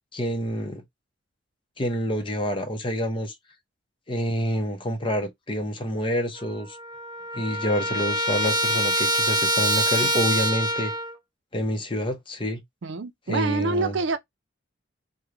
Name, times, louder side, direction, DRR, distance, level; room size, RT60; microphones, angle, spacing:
voice 1, 0.1-0.8 1.8-3.3 4.1-6.8 7.3-10.9 11.5-12.6 13.3-13.9, equal, 25° left, 0.7 m, -27 dB
Trumpet, 6.4-6.5 6.7-11.1, right 1 dB, 20° right, 0.5 m, -25 dB
voice 2, 12.8-14.2, right 3 dB, 70° right, 0.5 m, -26 dB
3.1 x 2.2 x 3.6 m
head